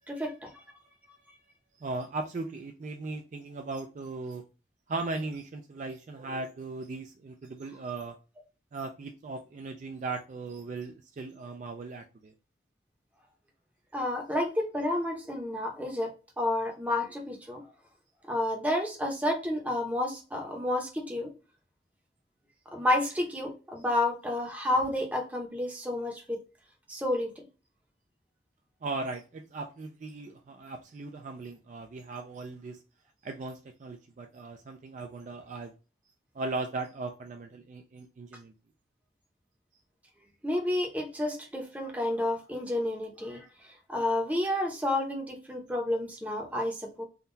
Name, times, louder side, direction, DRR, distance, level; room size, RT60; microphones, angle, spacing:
voice 1, 0.1-0.6 13.9-16.1 16.4-17.6 18.3-21.3 22.7-26.4 26.9-27.4 40.4-47.0, left 1 dB, 10° right, 0.7 m, -30 dB
voice 2, 1.8-4.4 4.9-8.2 8.7-12.3 28.8-32.8 33.2-35.7 36.3-38.5, right 3 dB, 40° right, 0.3 m, -38 dB
3.6 x 2.3 x 2.6 m
head